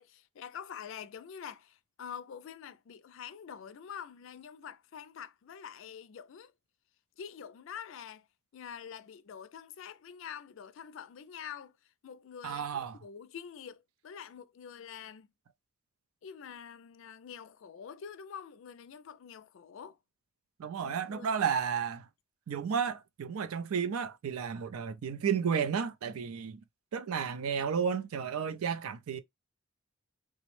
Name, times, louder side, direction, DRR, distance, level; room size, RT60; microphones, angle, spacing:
voice 1, 0.0-6.5 7.2-8.3 8.5-11.7 12.0-15.3 16.2-20.0 20.8-21.3, left 7 dB, 65° left, 0.3 m, -46 dB
voice 2, 12.4-13.0 20.6-22.1 22.5-26.6 26.9-29.2, right 7 dB, 90° right, 0.4 m, -32 dB
3.4 x 2.0 x 3.0 m
head